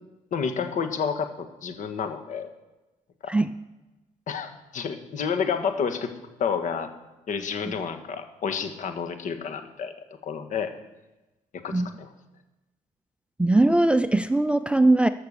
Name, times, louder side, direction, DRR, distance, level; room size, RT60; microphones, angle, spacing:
voice 1, 0.3-2.5 3.2-3.3 4.3-6.1 6.4-6.9 7.3-9.9 10.2-10.7 11.6-12.1, left 6 dB, 55° left, 7 dB, 1.7 m, -30 dB
voice 2, 13.4-15.1, right 2 dB, 5° right, 11 dB, 0.5 m, -20 dB
14.0 x 6.9 x 6.8 m, 1.1 s
cardioid pair, 95°, 15 cm